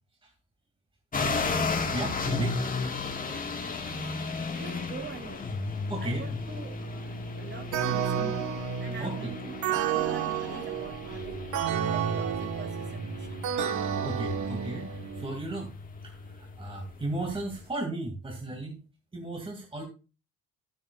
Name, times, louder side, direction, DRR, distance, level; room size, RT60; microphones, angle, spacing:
sound 1, 1.1-17.6, left 3 dB, 30° left, 1.5 m, -35 dB
voice 1, 1.9-2.6 5.9-6.4 9.0-9.3 14.0-15.7 16.0-18.8 19.1-19.8, right 2 dB, 20° right, 1 dB, 2.1 m, -35 dB
voice 2, 4.4-5.5 6.0-13.6, right 3 dB, 40° right, 4 dB, 3.0 m, -44 dB
sound 2, 7.7-15.4, right 9 dB, 75° right, 1.2 m, -31 dB
12.5 x 8.8 x 2.3 m, 0.32 s
cardioid pair, 115°, 30 cm